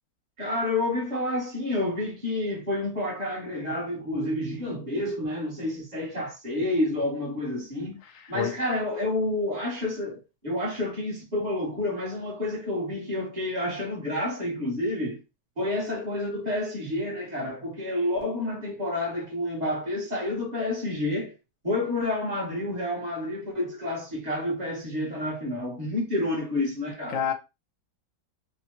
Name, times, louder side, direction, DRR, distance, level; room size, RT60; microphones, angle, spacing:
voice 1, 0.4-8.0 8.3-15.2 15.6-21.3 21.6-27.2, left 1 dB, 30° right, 1.1 m, -29 dB
voice 2, 8.0-8.5 27.1-27.3, left 9 dB, 75° left, 0.6 m, -29 dB
3.3 x 2.1 x 2.8 m
omnidirectional pair, 1.9 m